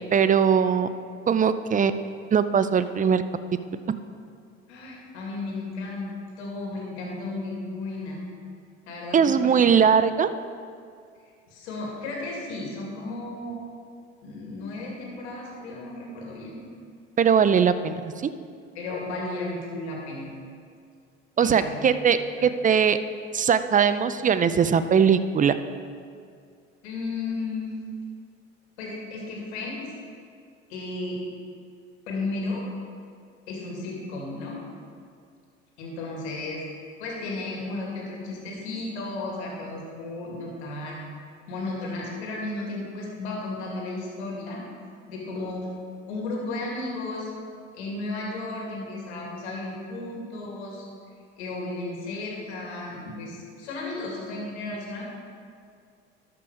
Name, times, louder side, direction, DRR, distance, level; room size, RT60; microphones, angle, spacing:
voice 1, 0.1-0.9 1.3-1.9 2.3-3.2 9.1-10.3 17.2-18.3 21.4-23.0 23.3-25.6, right 7 dB, 25° right, 12 dB, 0.5 m, -20 dB
voice 2, 4.7-8.2 8.9-9.8 11.5-13.6 14.2-16.6 18.7-20.3 21.4-21.9 22.4-22.5 26.8-27.7 28.8-29.8 30.7-31.2 32.1-32.6 33.5-34.6 35.8-36.6 37.0-41.0 41.5-44.6 45.1-45.7 46.1-47.3 47.7-50.9 51.4-55.0, left 2 dB, 80° left, -2 dB, 2.3 m, -34 dB
12.5 x 5.9 x 4.9 m, 2.2 s
hypercardioid pair, 70°, 33 cm